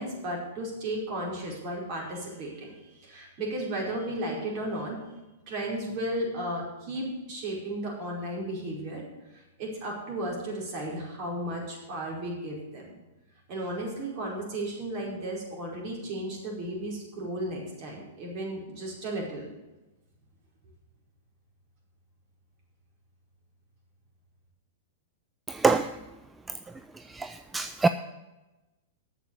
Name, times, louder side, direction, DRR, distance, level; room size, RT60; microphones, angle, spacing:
voice 1, 0.0-5.0 5.5-9.0 9.3-12.9 13.5-19.5, right 1 dB, 45° right, -3 dB, 5.0 m, -34 dB
voice 2, 25.5-25.9 27.1-27.9, right 3 dB, 10° right, 9 dB, 0.4 m, -25 dB
9.2 x 6.9 x 9.0 m, 1.0 s
hypercardioid pair, 110°, 0 cm